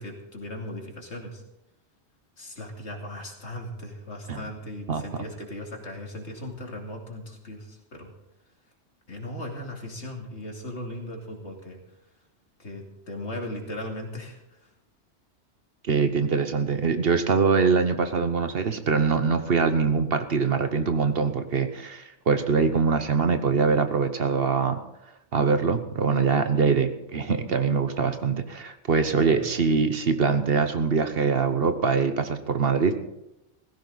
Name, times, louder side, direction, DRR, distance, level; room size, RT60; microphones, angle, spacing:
voice 1, 0.0-1.4 2.4-8.1 9.1-11.8 12.6-14.7 29.2-29.5, left 1 dB, 70° left, 1 dB, 2.9 m, -38 dB
voice 2, 15.8-24.8 25.3-32.9, right 5 dB, 55° right, 9 dB, 1.1 m, -23 dB
16.5 x 15.5 x 4.0 m, 0.92 s
omnidirectional pair, 1.2 m